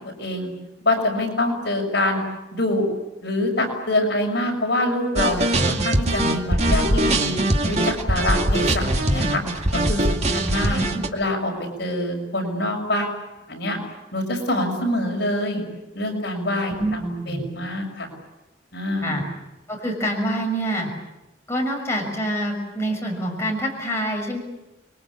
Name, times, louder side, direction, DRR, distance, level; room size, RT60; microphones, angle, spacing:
voice 1, 0.2-0.5 0.9-2.2 2.5-2.9 3.2-7.4 7.6-9.4 9.7-10.8 11.1-11.5 11.8-13.1 13.5-13.8 14.1-15.6 16.0-18.1 18.7-19.2, left 1 dB, 60° left, 1 dB, 7.1 m, -25 dB
sound 1, 5.2-11.1, right 1 dB, 40° right, 2.4 m, -21 dB
voice 2, 10.7-11.0 16.7-17.0 17.3-17.5 19.0-19.2 19.7-20.9 21.5-24.4, right 1 dB, 15° left, 0 dB, 6.4 m, -26 dB
29.0 x 23.0 x 8.6 m, 0.99 s
head